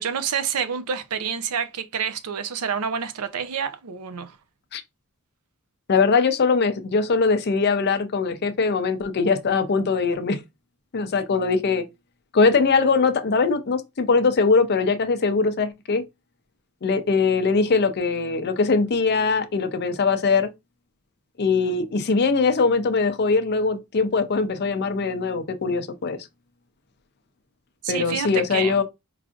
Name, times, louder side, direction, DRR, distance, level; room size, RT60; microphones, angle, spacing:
voice 1, 0.0-4.4 27.8-28.8, right 7 dB, 85° right, 0.6 m, -28 dB
voice 2, 5.9-10.4 10.9-11.8 12.3-16.0 16.8-20.5 21.4-26.2 27.9-28.8, left 4 dB, 50° left, 0.5 m, -21 dB
4.7 x 2.5 x 2.4 m
head